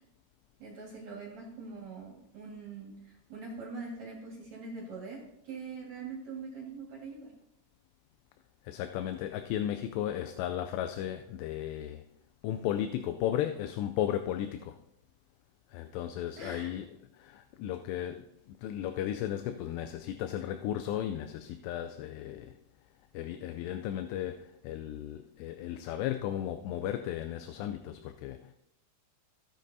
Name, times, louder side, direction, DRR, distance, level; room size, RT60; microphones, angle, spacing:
voice 1, 0.6-7.3 16.4-16.7, right 4 dB, 50° right, -2 dB, 2.5 m, -43 dB
voice 2, 8.6-12.0 12.4-14.8 15.7-16.9 17.1-22.6 23.1-28.5, left 11 dB, 85° left, 7 dB, 2.7 m, -35 dB
16.0 x 7.5 x 2.7 m, 0.79 s
omnidirectional pair, 4.8 m